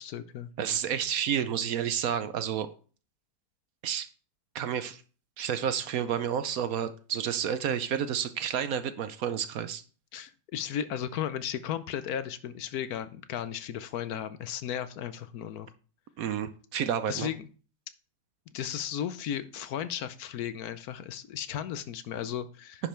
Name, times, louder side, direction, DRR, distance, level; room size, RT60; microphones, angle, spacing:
voice 1, 0.0-0.5 10.1-15.7 17.1-17.5 18.5-22.9, left 9 dB, 70° left, 13 dB, 1.1 m, -35 dB
voice 2, 0.6-2.7 3.8-4.1 4.5-5.0 5.4-9.8 16.2-17.3, right 8 dB, 65° right, 11 dB, 1.1 m, -30 dB
10.0 x 5.3 x 4.4 m, 0.38 s
omnidirectional pair, 1.7 m